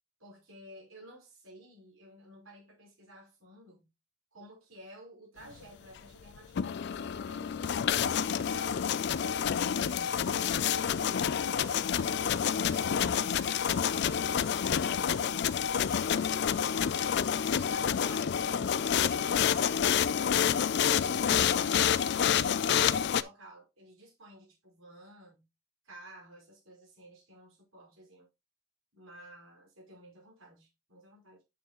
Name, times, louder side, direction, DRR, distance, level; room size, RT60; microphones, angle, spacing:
voice 1, 0.2-3.9 4.3-10.3 11.0-16.9 17.6-21.9 22.3-25.4 25.8-28.3 28.9-31.4, right 1 dB, 80° right, 5.1 m, -53 dB
sound 1, 6.4-23.2, left 8 dB, 55° left, 0.4 m, -28 dB
9.3 x 6.2 x 3.0 m
head